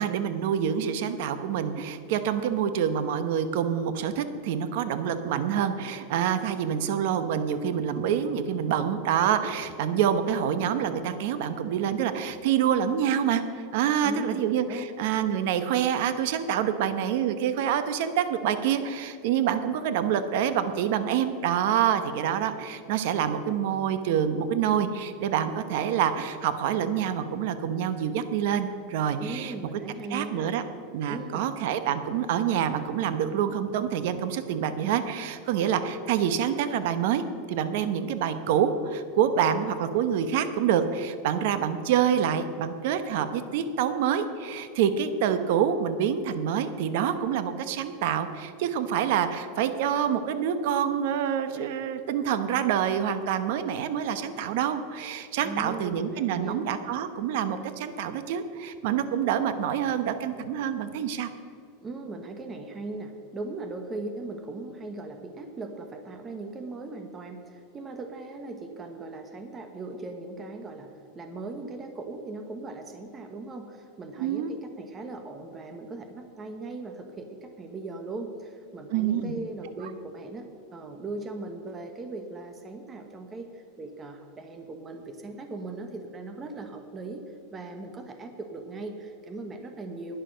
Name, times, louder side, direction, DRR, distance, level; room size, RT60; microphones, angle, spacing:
voice 1, 0.0-29.5 30.1-30.6 30.9-61.3 74.2-74.5 78.9-79.4 79.8-79.9, right 8 dB, 65° right, 11 dB, 1.0 m, -27 dB
voice 2, 14.0-14.9 29.2-30.5 31.1-31.5 55.4-56.7 61.8-70.9 71.1-80.5 80.7-90.2, right 3 dB, 20° right, 6 dB, 1.1 m, -39 dB
11.5 x 10.0 x 6.3 m, 2.4 s
supercardioid pair, 150°, 0 cm